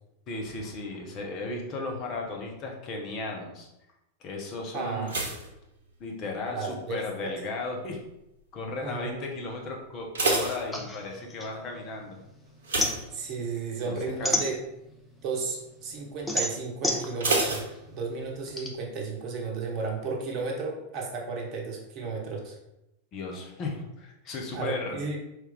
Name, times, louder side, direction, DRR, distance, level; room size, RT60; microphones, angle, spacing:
voice 1, 0.3-3.7 4.2-5.2 6.0-8.0 8.5-12.2 13.8-13.9 14.2-14.5 23.1-25.0, left 3 dB, 35° left, 1 dB, 0.9 m, -35 dB
voice 2, 4.7-5.1 6.5-7.3 8.8-9.2 13.1-14.6 15.2-22.6 24.5-25.2, right 4 dB, 40° right, 0 dB, 1.0 m, -33 dB
sound 1, 5.0-6.5 6.8-7.3 7.9-8.3 8.6-8.7 9.1-9.2 9.8-11.3 12.6-13.8 14.1-14.4 14.8-14.9 17.2-18.4 18.7-18.8, right 2 dB, 65° right, 0.9 m, -30 dB
sound 2, 10.7-12.2 12.5-15.1 15.5-18.7, left 1 dB, 10° left, 0.7 m, -31 dB
4.7 x 3.2 x 3.4 m, 0.88 s
figure-of-eight pair, 90°, 0 cm